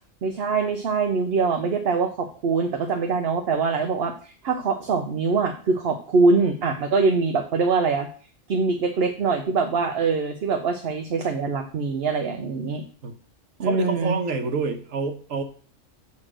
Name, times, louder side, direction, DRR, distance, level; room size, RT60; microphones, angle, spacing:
voice 1, 0.2-8.1 8.5-12.8 13.6-14.2, right 4 dB, 55° right, 5 dB, 0.9 m, -23 dB
voice 2, 13.6-15.4, right 4 dB, 85° right, 7 dB, 1.4 m, -27 dB
7.8 x 4.4 x 6.1 m, 0.42 s
omnidirectional pair, 1.3 m